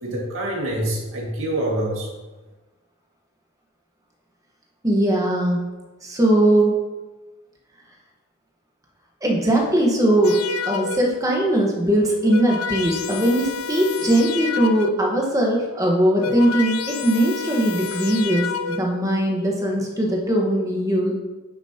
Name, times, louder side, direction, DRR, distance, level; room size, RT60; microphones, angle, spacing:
voice 1, 0.0-2.1, right 1 dB, 70° right, -3 dB, 2.1 m, -26 dB
voice 2, 4.8-5.7 6.0-6.8 9.2-10.4 10.6-21.1, right 1 dB, 15° right, -1 dB, 1.3 m, -20 dB
sound 1, 10.2-11.3 12.0-15.2 15.9-19.1, left 6 dB, 90° left, 0.6 m, -30 dB
9.3 x 6.9 x 2.9 m, 1.2 s
head